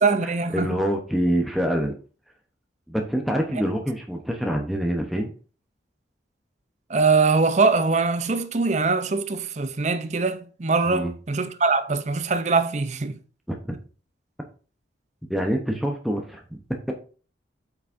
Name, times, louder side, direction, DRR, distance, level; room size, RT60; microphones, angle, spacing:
voice 1, 0.0-0.8 6.9-13.2, right 4 dB, 40° right, 0.6 m, -22 dB
voice 2, 0.5-1.9 2.9-5.3 10.9-11.1 13.5-13.8 15.3-16.4, equal, ahead, 0.8 m, -25 dB
8.0 x 5.9 x 2.6 m
head